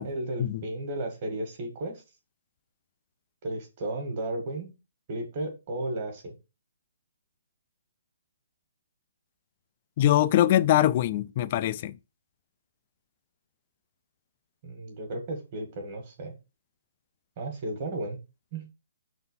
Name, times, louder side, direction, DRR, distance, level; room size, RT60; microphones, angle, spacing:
voice 1, 0.0-2.0 3.4-4.7 5.1-6.3 14.6-16.3 17.4-18.2 18.5-18.7, right 1 dB, 30° right, 1.6 m, -34 dB
voice 2, 10.0-12.0, left 12 dB, 25° left, 0.3 m, -23 dB
5.8 x 3.9 x 5.6 m
hypercardioid pair, 175°, 0 cm